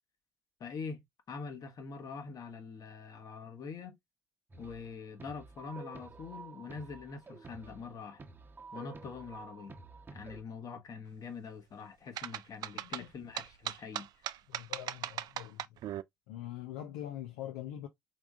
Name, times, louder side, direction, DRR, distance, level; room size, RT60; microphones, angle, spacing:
voice 1, 0.6-4.0 4.6-8.2 8.7-9.7 10.1-14.3, left 5 dB, 50° left, 1.3 m, -44 dB
sound 1, 4.5-4.9 5.2-10.4, right 4 dB, 25° right, 1.0 m, -50 dB
sound 2, 12.2-16.0, right 12 dB, 60° right, 0.4 m, -38 dB
voice 2, 12.7-13.1 14.5-15.8 16.3-17.9, left 12 dB, 80° left, 0.6 m, -43 dB
4.9 x 3.5 x 2.4 m
hypercardioid pair, 55°, 8 cm